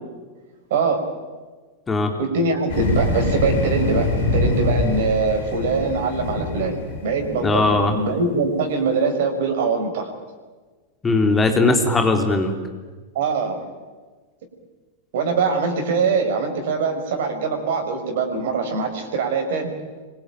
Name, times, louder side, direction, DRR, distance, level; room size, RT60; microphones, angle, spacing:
voice 1, 0.7-1.1 2.2-6.7 7.0-10.1 13.1-13.7 15.1-19.7, right 4 dB, 55° right, 3 dB, 5.3 m, -23 dB
sound 1, 2.7-8.0, left 2 dB, 55° left, 7.3 m, -24 dB
voice 2, 7.4-8.0 11.0-12.5, left 3 dB, 15° left, 5 dB, 3.6 m, -19 dB
26.5 x 23.5 x 9.3 m, 1.4 s
figure-of-eight pair, 90°, 0 cm